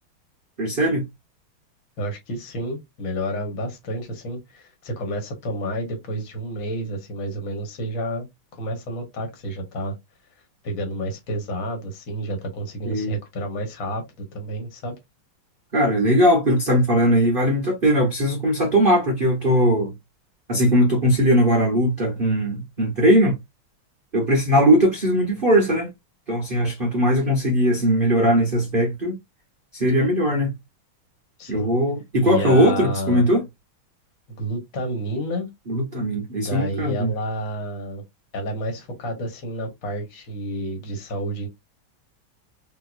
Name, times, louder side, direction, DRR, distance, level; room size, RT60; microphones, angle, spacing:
voice 1, 0.6-1.0 12.8-13.2 15.7-19.9 20.5-23.3 24.1-25.9 26.3-29.2 29.7-30.5 31.5-33.4 35.7-37.1, equal, 55° right, 0.6 m, -19 dB
voice 2, 2.0-8.3 8.6-10.0 10.6-14.0 14.3-14.9 31.4-31.7 32.2-33.3 34.3-35.5 36.3-38.0 38.3-41.5, equal, 45° left, 1.5 m, -30 dB
3.5 x 2.8 x 2.5 m
omnidirectional pair, 2.3 m